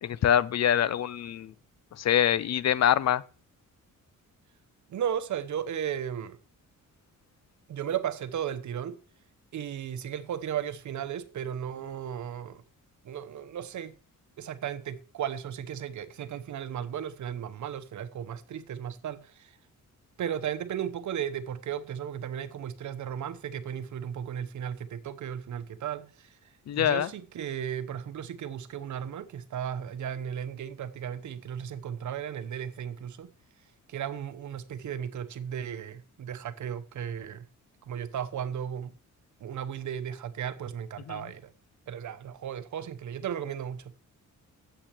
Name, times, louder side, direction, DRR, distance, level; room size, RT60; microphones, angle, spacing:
voice 1, 0.0-1.5 2.0-3.2 26.7-27.1 41.1-41.2, left 10 dB, 55° left, 0.6 m, -24 dB
voice 2, 4.9-6.4 7.7-9.0 9.5-12.6 13.0-13.9 14.4-19.6 20.2-26.4 26.7-33.3 33.9-37.5 37.9-38.9 39.4-41.5 41.9-44.0, right 9 dB, 65° right, 1.0 m, -35 dB
9.1 x 7.9 x 8.3 m
wide cardioid pair, 165°, 32 cm